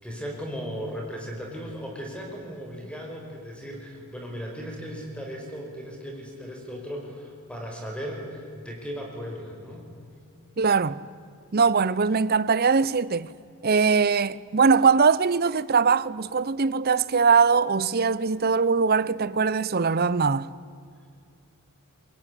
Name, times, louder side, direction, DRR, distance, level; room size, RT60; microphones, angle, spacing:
voice 1, 0.0-9.9, equal, 5° left, 5.3 m, -36 dB
voice 2, 10.6-11.0 11.5-13.3 13.6-20.5, right 5 dB, 45° right, 0.7 m, -21 dB
24.5 x 21.5 x 9.9 m
head